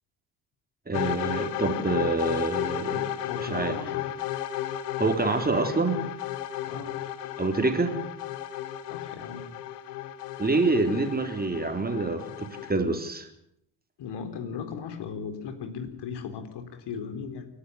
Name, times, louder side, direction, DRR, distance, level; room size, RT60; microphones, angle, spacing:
sound 1, 0.9-12.7, left 12 dB, 75° left, 1.7 m, -33 dB
voice 1, 0.9-3.1 3.5-3.8 5.0-6.0 7.4-7.9 10.4-13.3, right 3 dB, 20° right, 5 dB, 3.8 m, -26 dB
voice 2, 3.3-4.0 6.7-6.9 8.9-9.4 14.0-17.5, left 6 dB, 60° left, 7 dB, 4.1 m, -37 dB
28.5 x 11.5 x 9.9 m, 0.73 s
figure-of-eight pair, 50°, 47 cm